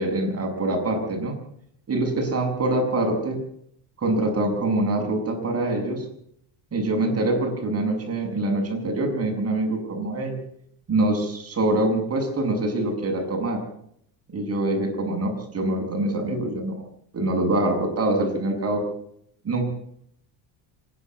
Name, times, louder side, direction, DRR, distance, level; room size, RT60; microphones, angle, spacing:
voice 1, 0.0-1.4 1.9-3.4 4.0-6.1 6.7-10.4 10.9-13.6 14.3-16.8 17.1-18.8 19.4-19.6, right 2 dB, 30° right, 3 dB, 7.1 m, -24 dB
25.0 x 11.0 x 9.7 m, 0.70 s
cardioid pair, 125°, 45 cm